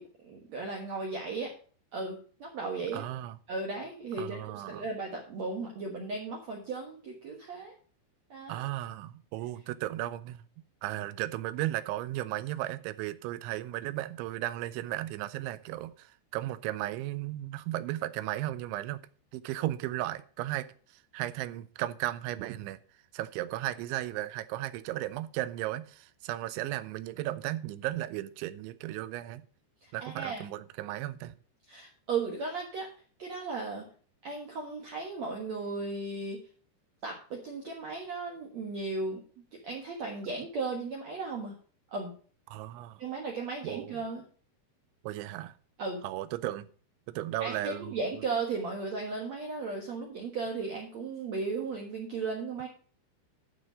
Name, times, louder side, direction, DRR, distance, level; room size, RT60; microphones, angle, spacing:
voice 1, 0.0-1.5 1.9-3.0 3.5-4.4 4.7-7.7 8.3-8.7 29.8-30.4 31.7-32.9 33.2-33.9 34.2-36.4 37.0-39.2 39.5-41.6 41.9-42.1 43.0-44.2 45.8-46.0 47.4-52.7, right 4 dB, 65° right, 1.7 m, -36 dB
voice 2, 2.9-3.4 4.2-4.8 8.5-10.4 10.8-19.0 19.3-20.7 20.9-22.8 23.1-29.4 29.9-31.3 42.5-43.0 43.6-44.0 45.0-45.5 46.0-46.7 47.2-48.2, right 15 dB, 85° right, 3.0 m, -35 dB
11.5 x 6.2 x 5.1 m
omnidirectional pair, 5.4 m